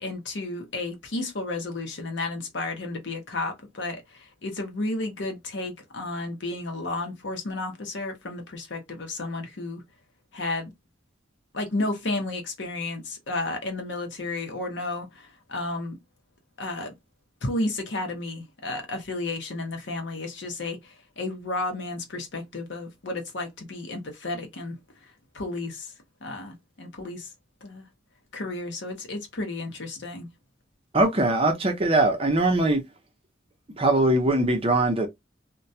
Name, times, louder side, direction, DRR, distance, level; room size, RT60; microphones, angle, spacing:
voice 1, 0.0-9.8 10.3-10.7 11.5-16.0 16.6-16.9 17.4-24.8 25.3-25.9 26.2-27.3 27.6-27.8 28.3-30.3, left 2 dB, 65° left, 0.7 m, -32 dB
voice 2, 30.9-32.8 33.8-35.1, right 2 dB, 30° right, 0.6 m, -21 dB
2.2 x 2.2 x 2.6 m
head